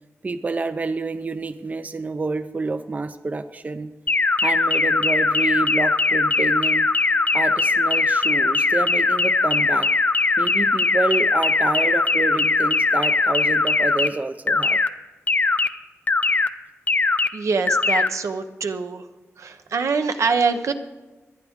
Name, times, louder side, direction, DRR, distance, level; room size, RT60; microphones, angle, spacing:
voice 1, 0.2-3.9 4.4-6.9 7.3-9.9 10.4-14.8, right 3 dB, 30° right, 11 dB, 0.5 m, -28 dB
sound 1, 4.1-14.1 14.5-14.9 15.3-15.7 16.1-16.5 16.9-17.3 17.7-18.1, left 3 dB, 35° left, 0.5 m, -20 dB
voice 2, 17.3-19.1 19.4-20.7, right 4 dB, 75° right, 8 dB, 0.9 m, -24 dB
23.0 x 9.5 x 3.6 m, 1.2 s
wide cardioid pair, 115°, 5 cm